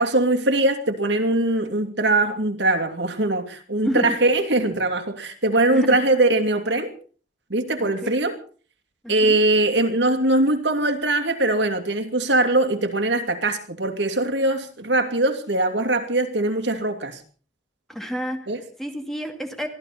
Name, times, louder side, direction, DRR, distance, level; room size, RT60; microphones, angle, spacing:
voice 1, 0.0-6.9 7.5-8.4 9.1-17.2 18.5-18.6, right 2 dB, 65° right, 5 dB, 2.7 m, -21 dB
voice 2, 3.8-4.2 5.7-5.9 7.8-8.1 9.0-9.4 17.9-18.5 18.8-19.7, equal, ahead, 5 dB, 2.1 m, -29 dB
23.5 x 14.5 x 4.2 m, 0.41 s
head